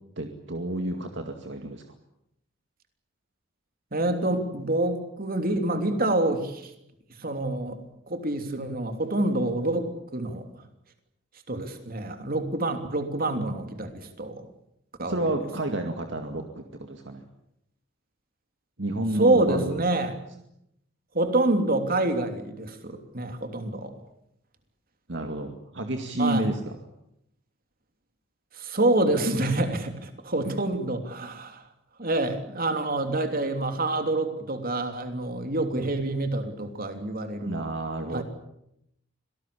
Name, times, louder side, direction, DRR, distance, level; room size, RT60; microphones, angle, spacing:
voice 1, 0.2-1.8 15.1-17.2 18.8-19.8 25.1-26.8 37.5-38.2, right 1 dB, 65° right, 5 dB, 2.2 m, -30 dB
voice 2, 3.9-6.7 7.2-7.8 8.1-10.5 11.5-14.4 15.0-15.3 19.1-20.1 21.1-23.9 26.2-26.5 28.5-31.6 32.0-37.6 38.1-38.2, right 2 dB, 45° right, 7 dB, 3.2 m, -27 dB
26.0 x 18.5 x 8.6 m, 0.79 s
head